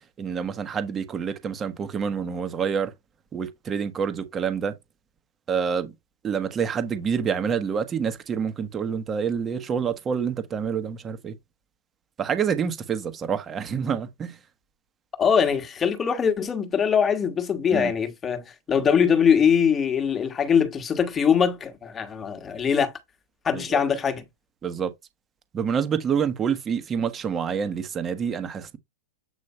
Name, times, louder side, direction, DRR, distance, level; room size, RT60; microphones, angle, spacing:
voice 1, 0.2-2.9 3.3-4.7 5.5-5.9 6.2-11.3 12.2-14.4 17.7-17.9 23.5-23.8 24.6-24.9 25.5-28.8, right 7 dB, 20° right, 1.3 m, -27 dB
voice 2, 15.2-22.9 23.4-24.2, left 7 dB, 20° left, 1.5 m, -22 dB
8.3 x 3.1 x 4.3 m
hypercardioid pair, 135°, 0 cm